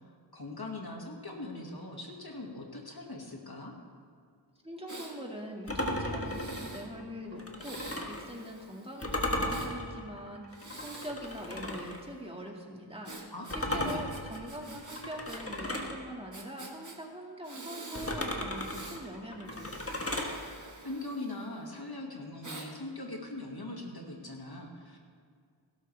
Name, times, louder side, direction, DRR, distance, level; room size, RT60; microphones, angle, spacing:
voice 1, 0.3-3.7 13.3-14.1 20.8-25.0, left 2 dB, 50° left, 0 dB, 2.1 m, -41 dB
voice 2, 4.6-10.5 10.8-13.1 13.5-20.0, equal, 10° right, -1 dB, 2.1 m, -43 dB
Breathing, 4.9-5.2 6.2-6.9 7.6-9.7 10.5-12.1 13.0-15.4 15.7-15.8 16.3-17.0 17.4-18.2 18.5-19.0 19.5-21.6 22.4-22.7, right 2 dB, 40° right, 1.6 m, -47 dB
sound 1, 5.7-8.3 9.0-12.0 13.5-16.0 17.9-20.4, left 1 dB, 30° left, 1.6 m, -35 dB
16.5 x 12.5 x 3.5 m, 2.1 s
wide cardioid pair, 50°, 46 cm